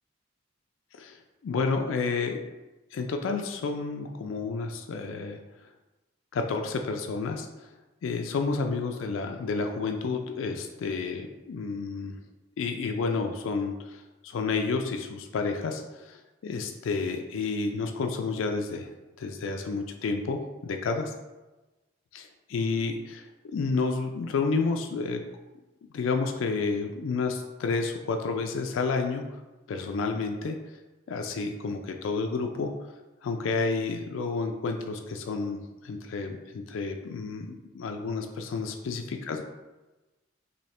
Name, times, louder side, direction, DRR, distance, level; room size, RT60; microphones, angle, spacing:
voice 1, 1.4-2.4 2.9-5.4 6.3-7.7 8.0-12.2 12.6-21.1 22.1-25.2 25.9-29.2 29.7-30.6 31.1-32.7 33.2-39.4, left 4 dB, 75° left, 5 dB, 0.3 m, -30 dB
3.2 x 2.7 x 4.2 m, 1.1 s
head